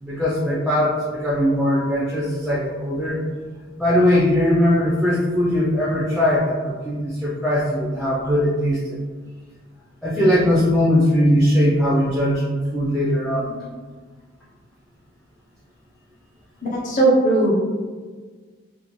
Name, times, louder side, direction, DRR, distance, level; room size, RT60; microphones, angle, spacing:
voice 1, 0.0-3.2 3.8-9.0 10.0-12.4 12.7-13.5, equal, ahead, -6 dB, 0.3 m, -20 dB
voice 2, 16.6-17.5, right 2 dB, 40° left, -6 dB, 0.7 m, -18 dB
2.6 x 2.1 x 2.9 m, 1.4 s
head